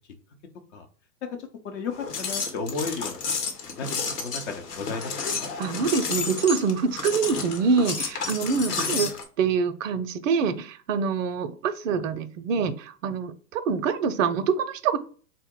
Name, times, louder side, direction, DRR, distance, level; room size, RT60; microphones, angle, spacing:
voice 1, 1.2-3.2 3.6-5.5 8.7-9.0, left 4 dB, 45° left, 5 dB, 0.8 m, -34 dB
sound 1, 1.9-9.2, left 5 dB, 75° left, 1.1 m, -31 dB
voice 2, 5.6-9.1 9.4-15.0, right 5 dB, 55° right, 10 dB, 0.5 m, -25 dB
3.8 x 2.1 x 3.7 m, 0.41 s
hypercardioid pair, 115°, 48 cm